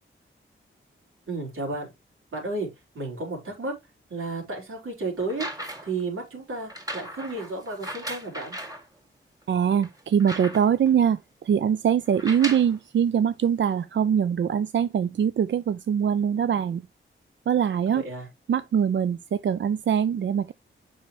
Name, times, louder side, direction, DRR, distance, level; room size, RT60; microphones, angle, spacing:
voice 1, 1.3-1.9 2.3-2.7 2.9-3.7 4.1-5.5 5.8-8.6 17.9-18.3, right 2 dB, 80° right, 3.9 m, -32 dB
sound 1, 5.2-6.0 6.7-8.9 9.4-9.5 9.8-10.9 12.1-12.8 13.7-13.8, right 1 dB, 15° right, 2.5 m, -37 dB
voice 2, 9.5-11.2 11.4-16.8 17.5-18.0 18.5-20.5, right 8 dB, 60° right, 0.4 m, -23 dB
7.7 x 5.6 x 3.1 m
wide cardioid pair, 95°, 21 cm